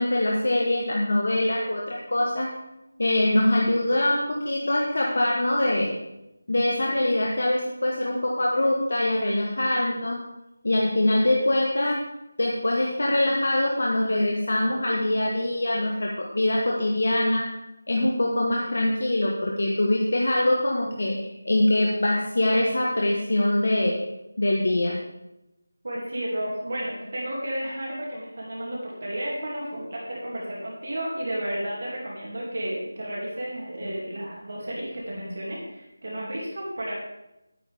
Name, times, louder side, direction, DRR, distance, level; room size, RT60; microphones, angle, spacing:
voice 1, 0.0-2.5 3.0-5.9 6.5-10.2 10.6-12.0 12.4-17.5 17.9-24.0 24.4-25.0 35.3-35.4, left 1 dB, 55° left, -1 dB, 1.3 m, -23 dB
voice 2, 25.8-36.9, right 1 dB, 45° right, -4 dB, 2.4 m, -32 dB
10.5 x 9.3 x 3.5 m, 0.92 s
figure-of-eight pair, 180°, 0 cm